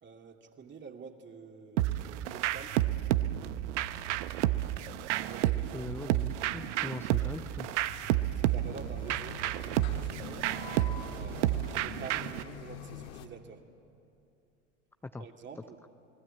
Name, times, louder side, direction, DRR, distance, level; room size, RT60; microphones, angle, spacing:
voice 1, 0.0-2.9 5.2-5.9 7.2-7.4 8.3-10.5 11.1-13.7 15.2-15.8, right 5 dB, 30° right, 3 dB, 2.6 m, -48 dB
sound 1, 1.8-12.4, right 14 dB, 75° right, 0.9 m, -31 dB
voice 2, 5.7-7.7 15.0-15.2, left 3 dB, 5° left, 9 dB, 0.5 m, -41 dB
sound 2, 7.2-13.3, left 7 dB, 75° left, 1.8 m, -46 dB
29.0 x 20.5 x 9.0 m, 2.6 s
hypercardioid pair, 90°, 36 cm